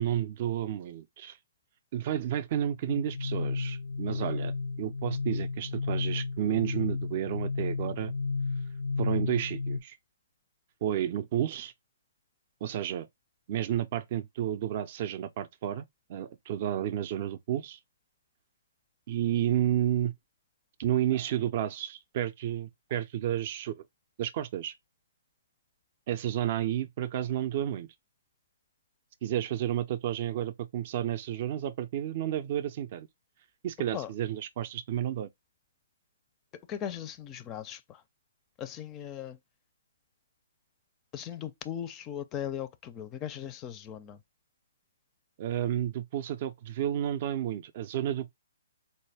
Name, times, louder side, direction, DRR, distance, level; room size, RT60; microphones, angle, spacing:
voice 1, 0.0-1.4 1.9-8.1 9.0-10.0 10.8-11.7 12.6-13.1 13.5-15.8 16.1-17.8 19.1-20.1 20.8-23.8 24.2-24.7 26.1-27.9 29.2-33.1 33.6-35.3 45.4-48.3, right 11 dB, 45° right, 0.4 m, -31 dB
sound 1, 2.9-9.8, left 4 dB, 85° left, 0.4 m, -32 dB
voice 2, 36.7-38.0 38.6-39.4 41.1-44.2, left 10 dB, 25° left, 0.4 m, -38 dB
4.0 x 2.2 x 3.3 m
hypercardioid pair, 135°, 0 cm